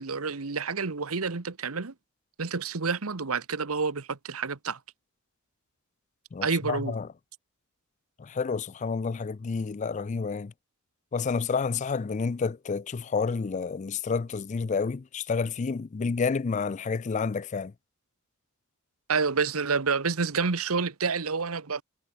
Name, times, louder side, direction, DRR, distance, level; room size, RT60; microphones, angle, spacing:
voice 1, 0.0-1.9 2.4-4.8 6.4-6.9 19.1-21.8, right 5 dB, 90° right, 1.2 m, -28 dB
voice 2, 6.3-7.1 8.2-10.5 11.1-17.7, left 5 dB, 35° left, 0.4 m, -29 dB
head